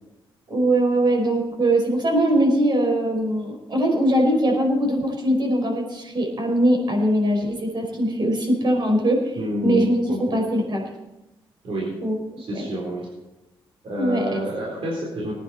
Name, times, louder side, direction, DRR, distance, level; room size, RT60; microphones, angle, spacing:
voice 1, 0.5-10.0 10.3-10.9 12.0-12.2 12.5-12.6 14.0-14.3, right 1 dB, 50° right, 1 dB, 5.2 m, -21 dB
voice 2, 9.4-10.4 11.6-12.0 12.4-13.1 13.8-15.3, equal, 75° right, -3 dB, 4.0 m, -29 dB
19.5 x 10.0 x 4.3 m, 0.98 s
cardioid pair, 100°, 9 cm